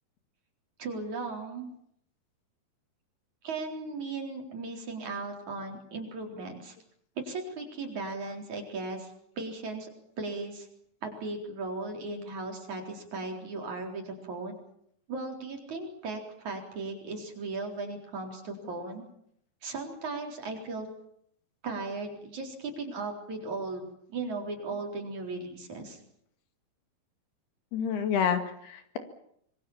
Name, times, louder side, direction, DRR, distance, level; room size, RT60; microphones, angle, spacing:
voice 1, 0.8-1.7 3.4-6.8 7.2-9.9 10.2-10.7 11.0-14.6 15.1-19.0 19.6-20.9 21.6-26.0, right 3 dB, 50° right, 2 dB, 5.2 m, -37 dB
voice 2, 27.7-29.0, left 7 dB, 75° left, 7 dB, 4.1 m, -29 dB
25.5 x 22.5 x 7.3 m, 0.70 s
omnidirectional pair, 4.6 m